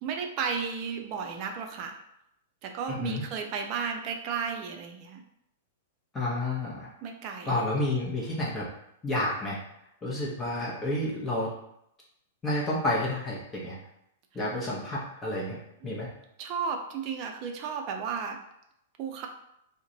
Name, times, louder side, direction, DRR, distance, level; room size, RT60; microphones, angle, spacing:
voice 1, 0.0-2.0 2.6-5.2 7.0-7.5 15.8-16.0 16.4-18.4 19.0-19.3, right 6 dB, 40° right, 3 dB, 0.5 m, -33 dB
voice 2, 2.9-3.2 6.1-6.9 7.5-8.7 9.0-9.6 10.0-11.5 12.4-13.8 14.3-15.6 15.8-16.1, left 1 dB, 15° left, -5 dB, 0.7 m, -30 dB
2.5 x 2.1 x 3.8 m, 0.78 s
figure-of-eight pair, 100°, 0 cm